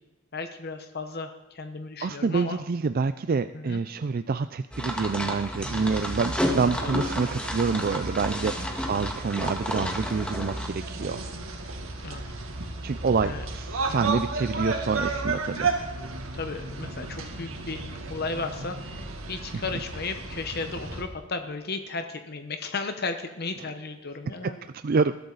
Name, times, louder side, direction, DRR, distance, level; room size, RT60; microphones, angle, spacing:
voice 1, 0.3-2.6 3.5-3.8 6.8-6.9 8.6-8.7 12.0-12.2 13.2-13.4 13.9-14.1 16.3-17.8 18.1-24.7, left 3 dB, 50° left, 7 dB, 1.0 m, -34 dB
voice 2, 2.0-11.2 12.8-15.7 23.6-23.7 24.3-24.5 24.8-25.2, right 4 dB, 45° right, 11 dB, 0.4 m, -27 dB
sound 1, 4.7-10.7, equal, 5° left, 1.9 m, -31 dB
sound 2, 5.6-21.0, right 3 dB, 90° right, 2.3 m, -34 dB
21.5 x 13.0 x 4.0 m, 1.0 s
head